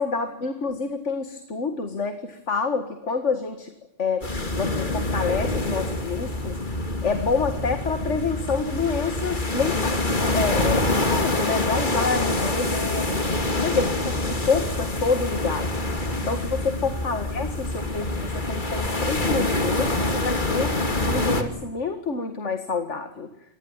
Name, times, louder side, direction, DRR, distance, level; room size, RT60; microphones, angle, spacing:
voice 1, 0.0-3.7 4.0-4.3 4.5-6.8 7.0-13.3 13.6-15.8 16.1-23.3, left 4 dB, 80° left, 8 dB, 2.2 m, -28 dB
sound 1, 4.2-21.4, left 2 dB, 40° left, 2.8 m, -26 dB
25.5 x 20.0 x 9.0 m, 0.87 s
omnidirectional pair, 1.2 m